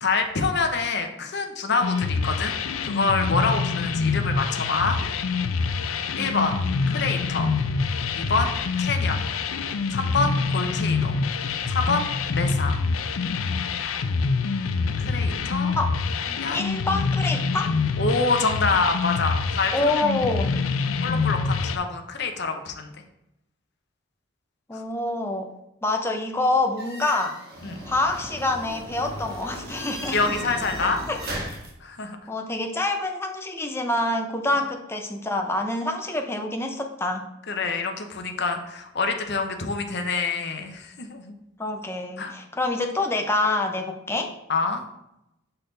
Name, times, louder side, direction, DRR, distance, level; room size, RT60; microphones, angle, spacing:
voice 1, 0.0-5.0 6.1-6.5 6.9-7.5 8.2-9.2 9.9-11.1 11.7-12.1 12.3-12.7 15.0-15.7 16.3-16.6 18.0-19.9 21.0-22.9 24.7-24.8 27.6-27.8 30.1-31.0 31.8-32.2 34.5-34.6 37.5-41.3 42.2-42.3 44.5-44.8, left 4 dB, 55° left, 5 dB, 0.7 m, -26 dB
sound 1, 1.8-21.8, left 4 dB, 85° left, 0.5 m, -26 dB
voice 2, 16.5-17.8 19.7-20.5 24.7-25.5 25.8-27.4 27.9-30.3 30.8-31.2 32.3-37.2 41.6-44.3, left 2 dB, 10° left, 3 dB, 0.6 m, -26 dB
sound 2, 26.8-31.7, equal, 50° right, 1.4 m, -36 dB
6.7 x 4.1 x 3.9 m, 0.84 s
head